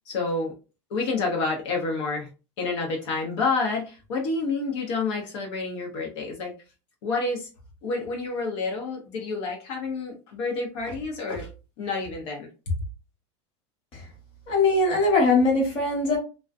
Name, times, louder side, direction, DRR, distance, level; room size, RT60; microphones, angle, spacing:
voice 1, 0.1-0.5 0.9-2.3 2.6-6.5 7.0-7.5 7.8-11.5 11.8-12.5, left 3 dB, 70° left, 0 dB, 0.8 m, -29 dB
voice 2, 14.5-16.2, left 3 dB, 35° left, -2 dB, 1.2 m, -21 dB
2.3 x 2.2 x 2.5 m, 0.32 s
supercardioid pair, 150°, 15 cm